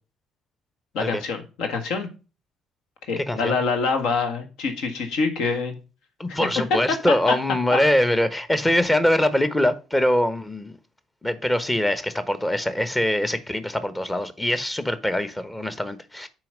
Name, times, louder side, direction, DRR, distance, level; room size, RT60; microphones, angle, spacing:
voice 1, 0.9-2.1 3.1-5.8 6.3-6.4 7.7-7.8, left 4 dB, 65° left, 1.5 m, -26 dB
voice 2, 3.2-3.6 6.2-10.8 11.2-16.3, left 1 dB, 15° left, 1.2 m, -23 dB
7.5 x 5.1 x 5.3 m
hypercardioid pair, 50°, 0 cm